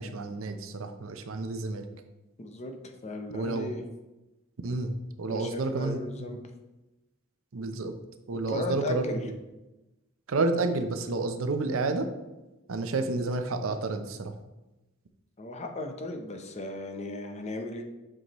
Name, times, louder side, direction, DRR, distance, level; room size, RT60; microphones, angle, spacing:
voice 1, 0.0-1.8 3.3-3.8 4.6-6.3 7.5-7.9 8.3-9.4 10.3-12.1 12.7-14.3, right 3 dB, 80° right, 7 dB, 0.6 m, -30 dB
voice 2, 2.4-2.7 3.0-3.8 5.3-6.4 8.5-9.2 15.4-17.8, left 2 dB, 35° left, 4 dB, 0.7 m, -36 dB
7.6 x 4.8 x 3.0 m, 1.0 s
head